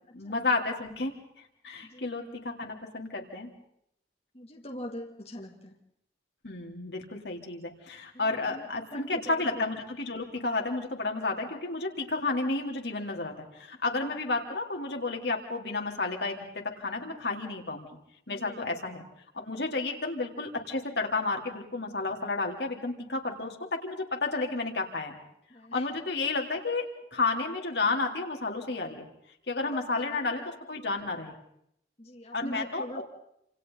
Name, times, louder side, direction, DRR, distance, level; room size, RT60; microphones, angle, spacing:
voice 1, 0.1-3.5 6.4-16.4 16.8-17.9 18.3-19.0 19.3-25.2 25.7-26.9 27.1-29.1 29.5-31.4 32.3-33.0, left 3 dB, 70° left, 1 dB, 3.6 m, -31 dB
voice 2, 1.8-2.2 4.3-5.7 8.2-8.7 8.9-9.6 18.3-18.6 25.5-25.9 29.7-29.8 30.8-30.9 32.0-33.0, equal, 35° left, -1 dB, 2.8 m, -42 dB
29.0 x 28.0 x 4.1 m, 0.75 s
head